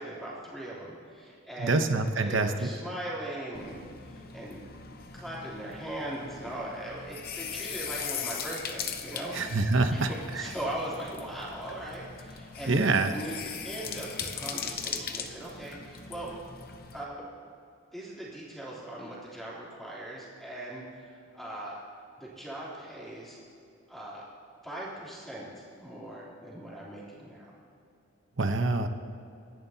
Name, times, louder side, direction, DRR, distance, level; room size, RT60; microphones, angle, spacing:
voice 1, 0.0-1.9 2.2-4.6 5.1-9.6 9.9-16.3 16.9-17.3 17.9-21.8 22.2-23.4 23.9-24.3 24.6-25.5 25.8-27.5, right 1 dB, ahead, -7 dB, 3.2 m, -39 dB
voice 2, 1.6-2.7 9.3-10.1 12.7-13.1 28.4-28.9, right 3 dB, 65° right, 7 dB, 0.9 m, -25 dB
sound 1, 3.5-17.0, left 7 dB, 45° left, 0.8 m, -40 dB
24.5 x 11.0 x 2.8 m, 2.7 s
head